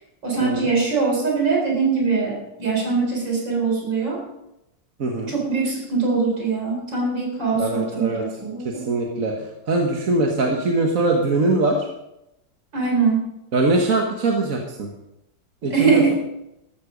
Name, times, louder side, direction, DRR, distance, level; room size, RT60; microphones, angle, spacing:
voice 1, 0.2-4.2 5.3-8.8 12.7-13.3 15.6-16.1, right 4 dB, 75° right, -1 dB, 5.0 m, -22 dB
voice 2, 5.0-5.3 7.5-8.2 8.7-11.9 13.5-14.9 15.6-16.1, right 2 dB, 50° right, 1 dB, 1.7 m, -22 dB
14.0 x 13.5 x 5.2 m, 0.87 s
omnidirectional pair, 2.0 m